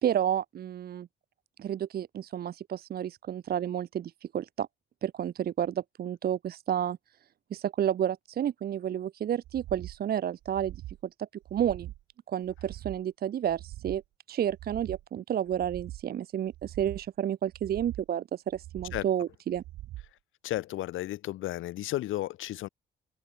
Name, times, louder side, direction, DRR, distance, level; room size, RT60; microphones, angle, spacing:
voice 1, 0.0-1.1 1.6-4.7 5.0-7.0 7.5-10.7 11.2-11.9 12.3-14.0 14.3-19.6, right 10 dB, 50° right, 0.6 m, -31 dB
sound 1, 9.4-10.0 10.4-11.0 11.4-12.0 12.4-13.0 13.4-14.0 14.5-15.0 15.5-16.1 16.5-17.1 17.5-18.1 18.5-19.1 19.5-20.1 20.5-20.6, right 15 dB, 90° right, 6.9 m, -43 dB
voice 2, 20.4-22.7, left 15 dB, 85° left, 2.0 m, -33 dB
open air
cardioid pair, 90°, 20 cm